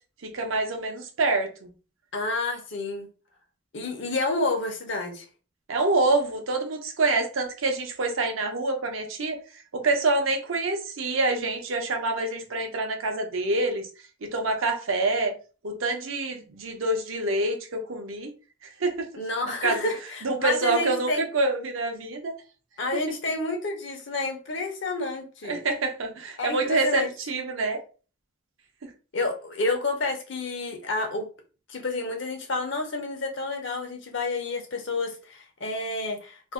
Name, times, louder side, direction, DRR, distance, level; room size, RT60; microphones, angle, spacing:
voice 1, 0.2-1.7 5.7-9.4 9.7-13.9 14.2-15.3 15.6-18.3 18.6-19.1 19.6-19.9 20.2-22.3 25.5-27.8 28.8-28.9, right 2 dB, 70° right, 0.7 m, -26 dB
voice 2, 2.1-3.1 3.7-5.2 19.2-21.2 22.8-25.6 26.4-27.1 29.1-31.3 31.7-36.5, left 2 dB, 60° left, 0.7 m, -29 dB
2.6 x 2.1 x 3.5 m
head